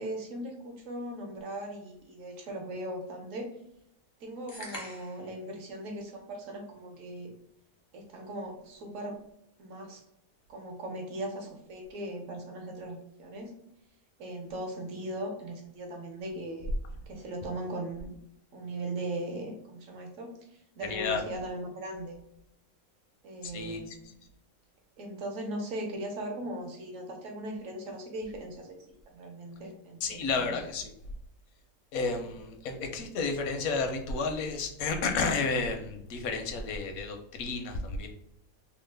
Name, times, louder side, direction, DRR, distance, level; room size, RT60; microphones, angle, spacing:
voice 1, 0.0-3.5 4.2-7.3 7.9-9.2 9.6-10.0 10.5-13.5 14.2-16.7 17.1-18.2 18.5-22.2 23.2-24.2 25.0-28.8 29.1-30.5, right 1 dB, 65° right, 2 dB, 1.0 m, -39 dB
sound 1, 4.5-5.3, left 1 dB, 35° left, 0.4 m, -42 dB
voice 2, 20.9-21.2 23.4-24.0 30.0-30.9 31.9-38.1, left 4 dB, 80° left, 5 dB, 1.1 m, -31 dB
3.0 x 2.1 x 3.2 m, 0.75 s
omnidirectional pair, 1.5 m